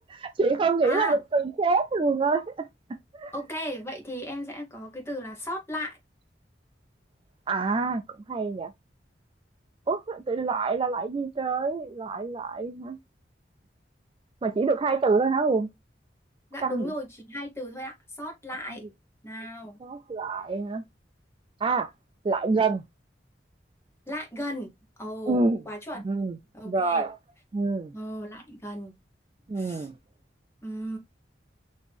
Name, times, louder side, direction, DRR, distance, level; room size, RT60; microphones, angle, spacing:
voice 1, 0.1-2.7 3.1-3.3 7.5-8.7 9.9-13.0 14.4-15.7 16.6-16.9 18.7-18.8 19.8-20.8 21.6-21.9 22.2-22.8 25.3-25.6 26.0-26.4 26.6-27.2 27.5-27.9 29.5-29.9, right 4 dB, 30° right, 0.3 m, -26 dB
voice 2, 0.8-1.2 3.3-6.0 16.5-18.8 19.2-19.8 24.1-24.7 25.0-25.4 25.7-26.1 26.5-27.0 27.9-28.9 29.6-29.9 30.6-31.0, equal, 15° left, 1.2 m, -35 dB
4.2 x 2.9 x 3.5 m
head